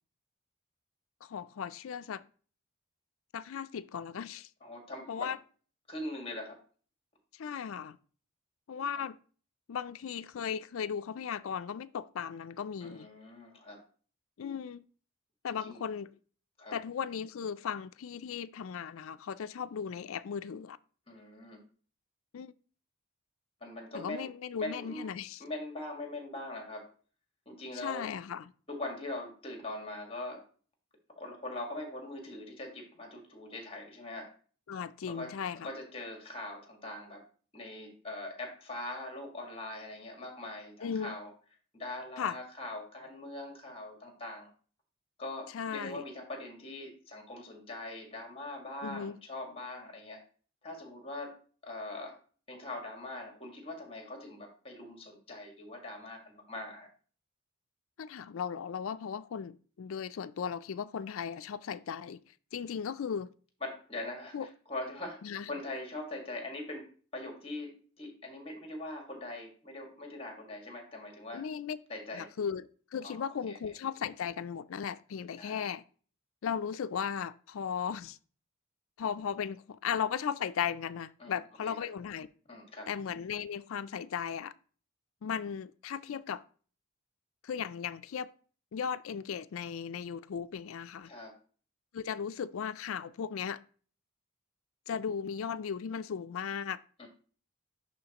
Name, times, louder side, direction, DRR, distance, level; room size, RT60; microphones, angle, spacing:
voice 1, 1.2-2.2 3.3-4.5 5.1-5.4 7.4-8.0 8.7-9.2 9.7-13.1 14.4-14.8 15.4-16.1 16.7-20.8 22.3-22.5 23.9-25.4 27.7-28.4 34.7-35.7 40.8-41.2 42.2-42.4 45.5-46.0 48.8-49.2 58.0-62.2 62.5-63.3 64.3-64.5 65.2-65.5 71.3-71.8 72.1-75.8 76.4-78.2 79.0-82.3 82.9-84.5 85.2-86.4 87.4-88.3 88.7-91.1 91.9-93.6 94.9-96.8, left 7 dB, 75° left, 0.4 m, -36 dB
voice 2, 4.6-5.3 5.9-6.6 12.8-13.8 15.6-15.8 16.6-16.8 21.1-21.6 23.6-24.3 24.6-25.1 25.4-26.9 27.5-28.1 28.7-30.5 31.2-34.3 35.1-37.2 37.5-41.3 41.7-44.5 45.2-50.2 50.6-51.4 51.6-52.2 52.5-56.9 63.6-71.5 71.9-72.3 73.0-73.6 75.4-75.6 81.2-81.3 81.6-81.8 82.5-82.9 91.1-91.4 97.0-97.1, left 2 dB, 25° left, 1.7 m, -42 dB
10.5 x 3.8 x 2.9 m
head